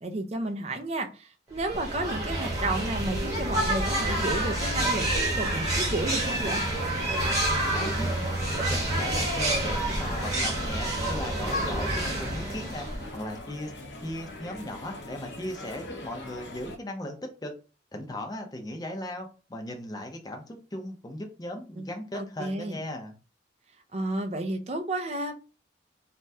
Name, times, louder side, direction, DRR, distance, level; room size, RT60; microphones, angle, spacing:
voice 1, 0.0-6.6 21.8-21.9 22.1-22.8 23.9-25.3, right 2 dB, 35° right, 0.5 m, -32 dB
sound 1, 1.6-13.2, right 1 dB, 20° right, 1.2 m, -28 dB
sound 2, 3.9-16.8, left 1 dB, 75° left, 0.8 m, -41 dB
voice 2, 7.5-8.1 8.7-12.9 13.1-13.7 14.0-17.5 17.9-23.2, left 1 dB, 20° left, 0.6 m, -37 dB
3.3 x 2.2 x 2.6 m
head